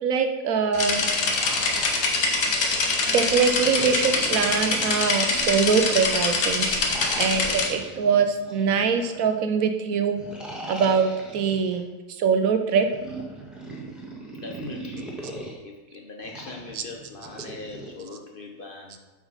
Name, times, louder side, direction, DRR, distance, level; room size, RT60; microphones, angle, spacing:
voice 1, 0.0-1.1 3.1-6.8 7.2-10.2 10.7-11.8 12.2-12.9 16.7-16.8, right 6 dB, 70° right, 7 dB, 1.1 m, -23 dB
sound 1, 0.7-7.7, left 3 dB, 75° left, 1.6 m, -24 dB
sound 2, 1.0-2.8 3.6-5.9 6.8-9.3 10.1-11.8 12.7-15.5 16.2-17.9, right 2 dB, ahead, 1.5 m, -39 dB
voice 2, 14.4-15.0 15.6-19.0, left 3 dB, 45° left, 1 dB, 0.8 m, -40 dB
8.1 x 5.1 x 5.5 m, 1.1 s
omnidirectional pair, 1.6 m